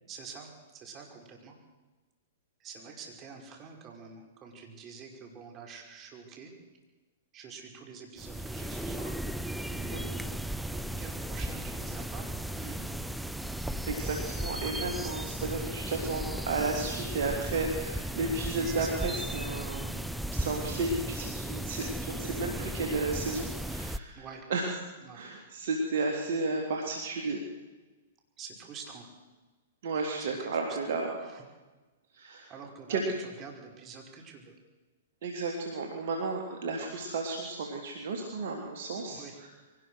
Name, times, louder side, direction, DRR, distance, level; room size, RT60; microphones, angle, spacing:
voice 1, 0.1-1.6 2.6-6.5 7.3-9.2 9.6-10.4 10.7-12.9 15.4-15.7 18.6-19.0 24.1-24.5 25.0-25.3 28.4-29.1 30.2-30.8 31.2-31.4 32.5-34.6 39.1-39.4, right 5 dB, 30° right, 1 dB, 5.4 m, -47 dB
sound 1, 8.2-24.0, right 1 dB, ahead, 0.7 m, -36 dB
voice 2, 13.9-20.0 20.3-24.2 24.5-24.6 25.1-27.4 29.8-31.1 32.1-32.5 32.9-33.0 35.2-39.5, right 3 dB, 60° right, 1 dB, 3.5 m, -33 dB
23.5 x 19.0 x 6.5 m, 1.2 s
hypercardioid pair, 115°, 0 cm